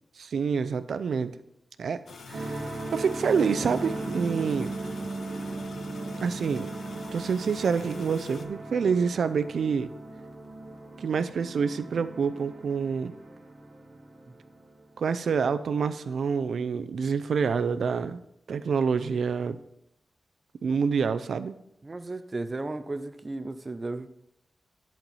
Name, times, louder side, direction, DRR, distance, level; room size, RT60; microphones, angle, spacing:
voice 1, 0.2-1.4 1.8-2.0 2.3-2.6 2.9-4.7 6.2-6.7 7.1-9.9 11.0-13.1 15.0-18.2 18.5-19.6 20.6-21.5, right 6 dB, 80° right, 11 dB, 0.4 m, -27 dB
sound 1, 2.1-8.5, left 4 dB, 65° left, 0.8 m, -45 dB
sound 2, 2.3-15.1, right 2 dB, 55° right, 1.5 m, -38 dB
voice 2, 21.8-24.1, right 2 dB, 25° right, 10 dB, 0.5 m, -35 dB
10.5 x 4.4 x 5.5 m, 0.79 s
wide cardioid pair, 155°, 0 cm